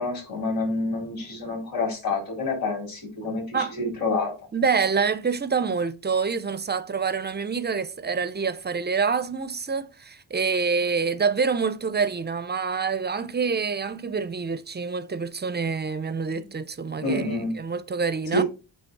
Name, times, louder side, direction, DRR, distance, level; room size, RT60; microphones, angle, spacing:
voice 1, 0.0-4.3 16.3-16.5 17.0-17.5 18.3-18.4, left 2 dB, 50° left, 4.3 m, -28 dB
voice 2, 4.5-17.2 17.6-18.4, right 5 dB, 25° right, 0.4 m, -26 dB
9.1 x 3.1 x 4.5 m
wide cardioid pair, 135°, 44 cm